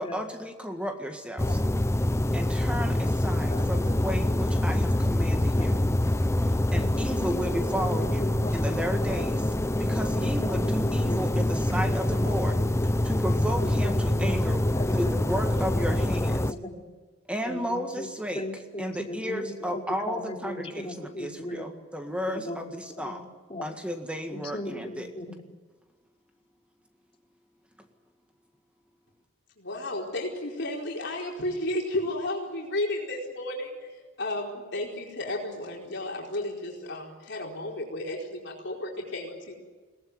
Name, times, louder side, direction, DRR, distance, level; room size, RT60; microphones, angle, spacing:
voice 1, 0.0-1.6 2.3-5.8 6.5-9.4 9.8-12.6 13.0-14.6 14.9-16.3 17.3-18.4 18.8-23.3 23.6-25.1, equal, 5° right, 5 dB, 1.8 m, -33 dB
sound 1, 1.4-16.5, left 1 dB, 15° left, 0.6 m, -25 dB
voice 2, 5.5-6.2 6.7-8.5 9.1-9.2 10.4-12.0 12.2-12.9 13.6-15.2 15.6-16.9 17.5-18.1 18.4-21.8 22.3-23.7 24.3-25.4, left 1 dB, 30° left, 2 dB, 3.4 m, -38 dB
voice 3, 29.6-33.9 34.2-39.6, left 1 dB, 65° left, -1 dB, 4.6 m, -33 dB
22.5 x 18.5 x 9.6 m, 1.3 s
head